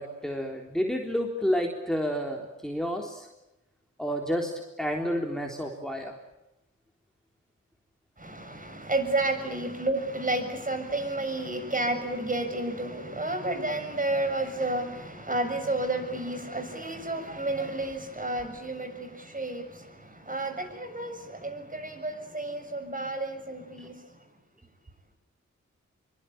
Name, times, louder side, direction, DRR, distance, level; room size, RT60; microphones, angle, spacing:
voice 1, 0.0-3.3 4.0-4.5 4.8-6.1 23.8-23.9, equal, ahead, 3.8 m, -30 dB
voice 2, 8.2-24.0, right 2 dB, 25° right, 7.0 m, -31 dB
25.5 x 24.0 x 9.0 m
cardioid pair, 85°, 30 cm